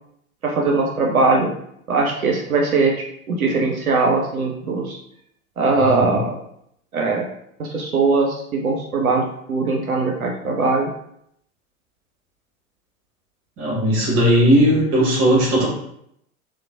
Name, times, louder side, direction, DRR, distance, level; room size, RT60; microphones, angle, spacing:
voice 1, 0.4-1.5 1.9-2.9 3.3-5.0 5.6-6.4 6.9-7.3 7.6-10.9, right 3 dB, 85° right, -1 dB, 0.5 m, -20 dB
voice 2, 13.6-15.7, equal, 35° right, -3 dB, 1.2 m, -17 dB
2.9 x 2.2 x 2.4 m, 0.74 s
figure-of-eight pair, 90°, 42 cm